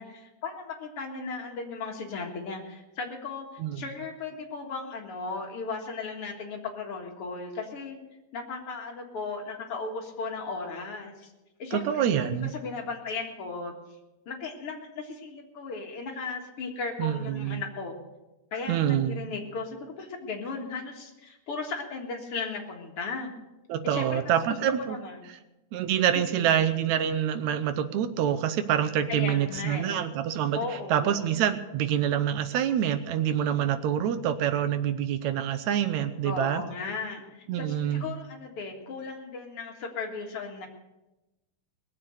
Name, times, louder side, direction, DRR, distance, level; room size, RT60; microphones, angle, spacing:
voice 1, 0.0-8.0 8.3-11.3 11.6-13.8 14.3-18.0 18.5-23.3 23.8-25.3 26.1-26.6 29.1-30.1 30.5-31.2 36.2-40.7, left 4 dB, 50° left, 1 dB, 2.4 m, -36 dB
voice 2, 11.7-12.5 17.0-17.6 18.7-19.2 23.7-25.0 25.7-36.6 37.5-38.1, right 10 dB, 70° right, 10 dB, 1.9 m, -26 dB
19.5 x 7.7 x 6.4 m, 1.0 s
omnidirectional pair, 3.7 m